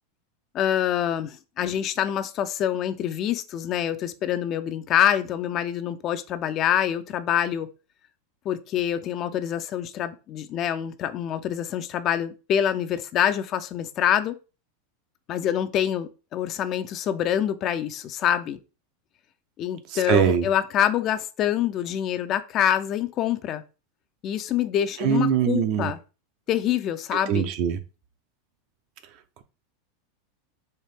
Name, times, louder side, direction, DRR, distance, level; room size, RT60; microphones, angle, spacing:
voice 1, 0.5-7.7 8.5-14.4 15.3-18.6 19.6-23.6 24.2-26.0 26.5-27.5, left 10 dB, 40° left, 0.5 m, -26 dB
voice 2, 20.1-20.5 25.0-25.9 27.3-27.8, right 8 dB, 55° right, 0.7 m, -22 dB
4.4 x 2.6 x 3.4 m
hypercardioid pair, 100°, 0 cm